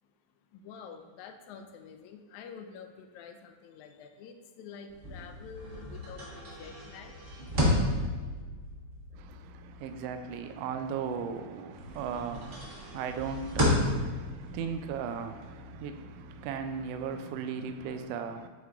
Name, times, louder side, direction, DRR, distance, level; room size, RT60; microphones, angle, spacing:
voice 1, 0.5-7.2, left 6 dB, 85° left, 1.9 m, -48 dB
sound 1, 4.9-11.4 11.7-17.1, left 1 dB, 45° right, 0.7 m, -33 dB
voice 2, 9.1-18.5, right 6 dB, 85° right, 1.4 m, -37 dB
9.5 x 3.5 x 3.8 m
omnidirectional pair, 3.3 m